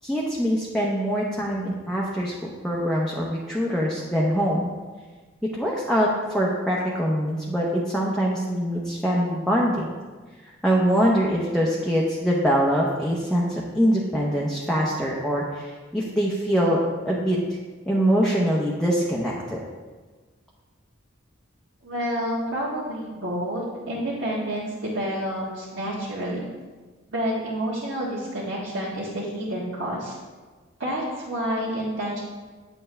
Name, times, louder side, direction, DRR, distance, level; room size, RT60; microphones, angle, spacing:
voice 1, 0.0-4.7 5.5-6.1 6.3-9.9 10.6-16.8 17.0-17.4 17.9-19.6, equal, ahead, -5 dB, 0.8 m, -23 dB
voice 2, 21.8-26.5 27.1-30.2 30.8-32.2, equal, 65° right, -9 dB, 1.6 m, -29 dB
9.0 x 6.9 x 3.3 m, 1.4 s
head